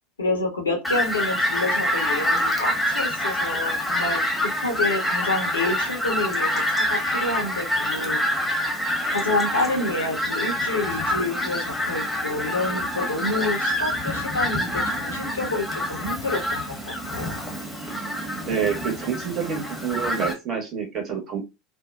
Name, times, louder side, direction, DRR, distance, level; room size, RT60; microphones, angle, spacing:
voice 1, 0.2-8.2 9.1-17.4, left 2 dB, 80° left, 2 dB, 0.7 m, -28 dB
Fowl, 0.8-20.3, left 1 dB, 5° left, 1.0 m, -26 dB
voice 2, 18.4-21.4, right 7 dB, 40° right, 1 dB, 1.1 m, -27 dB
2.6 x 2.1 x 2.3 m, 0.25 s
figure-of-eight pair, 75°, 0 cm